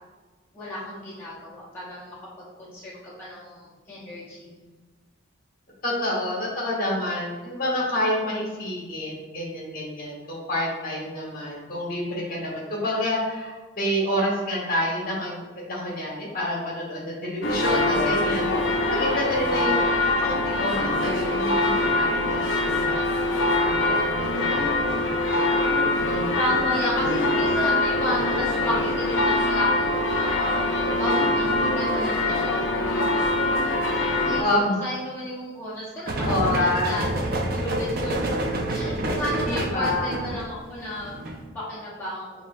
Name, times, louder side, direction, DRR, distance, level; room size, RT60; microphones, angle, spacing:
voice 1, 0.5-2.1 2.6-4.6 24.9-25.0 26.4-30.7 31.0-33.2 33.5-34.4 34.8-37.0 37.5-38.3 38.7-41.2 41.5-42.3, left 1 dB, 10° left, -10 dB, 0.8 m, -32 dB
voice 2, 5.8-19.9 20.2-23.1 23.6-25.3 27.2-27.6 32.7-32.8 34.4-34.8 36.3-37.0 38.8-39.0 39.4-40.2, left 1 dB, 45° left, -3 dB, 1.3 m, -28 dB
sound 1, 17.4-34.4, left 2 dB, 65° left, 0.5 m, -23 dB
sound 2, 36.1-41.4, right 1 dB, 45° right, 0.5 m, -28 dB
7.1 x 2.7 x 2.5 m, 1.3 s
head